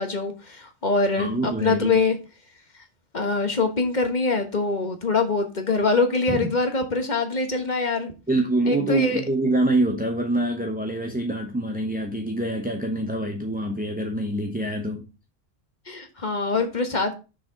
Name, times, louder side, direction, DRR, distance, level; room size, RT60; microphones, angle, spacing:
voice 1, 0.0-2.2 3.1-8.1 8.7-9.2 15.9-17.1, left 3 dB, 40° left, 1.5 m, -24 dB
voice 2, 1.2-2.0 6.3-6.5 8.3-15.0, right 1 dB, 10° right, 0.8 m, -25 dB
6.6 x 4.9 x 5.1 m
omnidirectional pair, 1.1 m